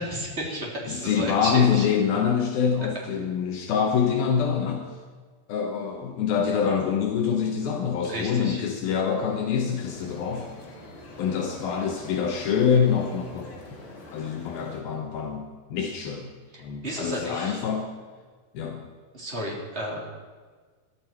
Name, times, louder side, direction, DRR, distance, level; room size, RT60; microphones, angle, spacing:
voice 1, 0.0-1.9 8.0-8.6 16.5-17.6 19.1-20.1, right 1 dB, 15° right, -2 dB, 2.4 m, -33 dB
voice 2, 0.9-4.8 5.5-10.5 11.2-13.5 14.1-16.3 16.6-17.9 18.5-18.8, left 7 dB, 85° left, 3 dB, 2.1 m, -25 dB
sound 1, 9.8-14.8, left 2 dB, 35° left, 2.1 m, -44 dB
21.0 x 13.0 x 4.6 m, 1.5 s
omnidirectional pair, 5.9 m